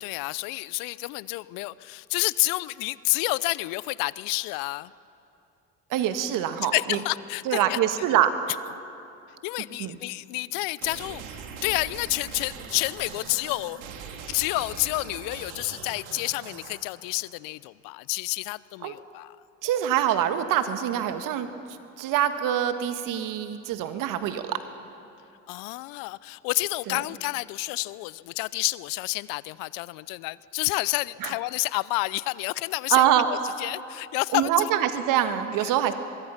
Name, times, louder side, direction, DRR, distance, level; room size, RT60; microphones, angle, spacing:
voice 1, 0.0-4.9 6.7-7.8 9.4-11.2 11.6-13.9 14.3-19.3 25.5-34.7, left 22 dB, 70° left, 20 dB, 0.6 m, -29 dB
voice 2, 5.9-7.0 7.5-8.3 9.8-10.0 18.8-18.9 19.6-21.5 22.0-24.6 26.9-27.0 31.2-31.3 32.9-33.3 34.3-35.9, right 11 dB, 65° right, 9 dB, 1.7 m, -24 dB
sound 1, 10.8-16.8, right 6 dB, 80° right, 2.5 m, -41 dB
23.5 x 22.5 x 5.8 m, 2.6 s
hypercardioid pair, 70°, 35 cm